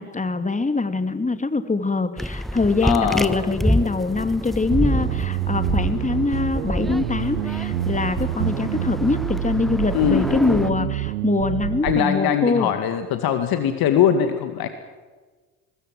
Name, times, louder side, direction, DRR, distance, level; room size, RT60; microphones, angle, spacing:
voice 1, 0.0-12.7, left 3 dB, 15° left, 10 dB, 2.5 m, -23 dB
sound 1, 2.2-10.7, equal, ahead, 1.1 m, -28 dB
voice 2, 2.8-3.4 9.9-10.9 11.8-14.7, left 8 dB, 55° left, 8 dB, 2.3 m, -22 dB
sound 2, 4.7-12.1, right 15 dB, 80° right, 0.7 m, -27 dB
23.5 x 21.5 x 7.7 m, 1.3 s
hypercardioid pair, 55°, 43 cm